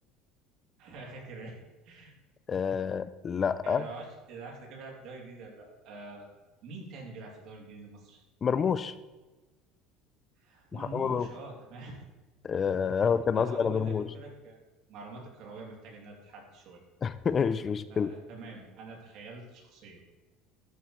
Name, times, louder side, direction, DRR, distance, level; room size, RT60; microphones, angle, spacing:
voice 1, 0.8-1.6 1.8-2.1 3.6-6.3 6.6-8.2 10.4-12.0 12.9-14.6 14.9-16.8 17.9-20.0, right 3 dB, 60° right, -1 dB, 2.8 m, -45 dB
voice 2, 2.5-3.9 8.4-8.9 10.7-11.3 12.4-14.1 17.0-18.1, left 6 dB, 30° left, 14 dB, 0.3 m, -28 dB
12.5 x 8.1 x 3.2 m, 1.2 s
cardioid pair, 135°, 0 cm